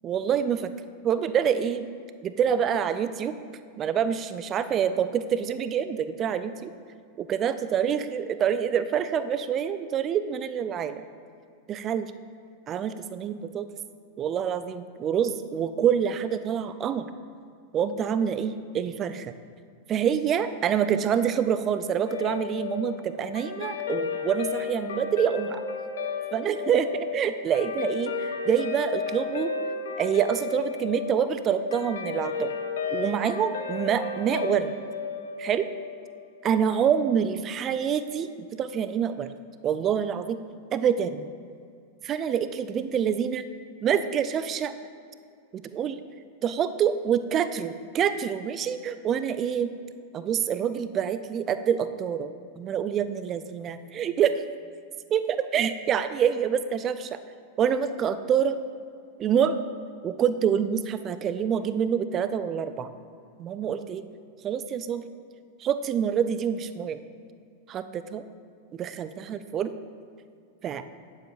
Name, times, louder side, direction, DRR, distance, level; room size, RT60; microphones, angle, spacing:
voice 1, 0.0-0.7 1.0-1.9 2.2-3.4 3.8-6.7 7.2-11.0 11.7-12.1 12.7-13.7 14.2-17.1 17.7-19.3 19.9-25.6 26.3-29.5 30.0-32.5 32.9-34.7 35.4-35.7 36.4-39.3 39.6-40.4 40.7-41.3 42.0-43.5 43.8-44.7 45.5-46.0 46.4-49.7 50.1-54.4 55.1-57.2 57.6-58.6 59.2-59.6 60.0-62.9 63.4-64.1 64.4-65.1 65.6-67.0 67.7-68.2 68.7-69.7 70.6-70.8, right 8 dB, 30° right, 12 dB, 0.3 m, -26 dB
Guitar, 22.1-36.7, left 6 dB, 60° left, 0.5 m, -33 dB
8.9 x 7.1 x 2.6 m, 2.4 s
figure-of-eight pair, 90°, 0 cm